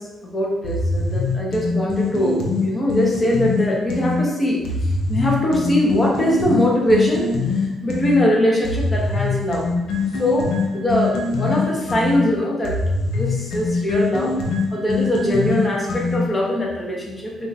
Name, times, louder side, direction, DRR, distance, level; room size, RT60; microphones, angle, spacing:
voice 1, 0.0-9.7 10.2-12.8 13.1-14.4 14.7-17.5, left 1 dB, 25° left, -2 dB, 1.2 m, -22 dB
sound 1, 0.6-4.2 4.6-8.2 8.6-16.4, left 3 dB, 80° left, 0.8 m, -23 dB
5.4 x 2.7 x 2.9 m, 1.0 s
cardioid pair, 90°, 0 cm